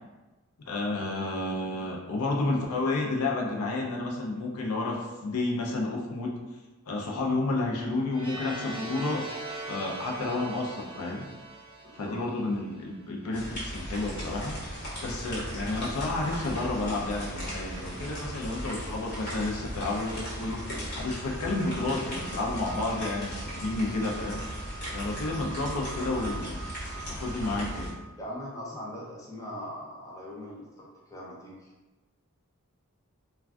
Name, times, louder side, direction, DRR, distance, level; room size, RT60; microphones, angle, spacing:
voice 1, 0.6-6.3 6.9-9.2 9.7-11.3 11.9-24.4 24.9-26.6 27.1-28.0, left 2 dB, 75° left, -1 dB, 0.5 m, -31 dB
sound 1, 8.1-13.0, right 2 dB, 25° right, 0.7 m, -41 dB
voice 2, 11.8-12.2 25.2-25.4 28.2-31.7, left 1 dB, 15° left, -6 dB, 0.5 m, -41 dB
sound 2, 13.3-27.9, equal, 50° left, 1.2 m, -37 dB
sound 3, 21.4-29.2, right 6 dB, 65° right, 0.4 m, -46 dB
2.4 x 2.3 x 3.3 m, 1.2 s
head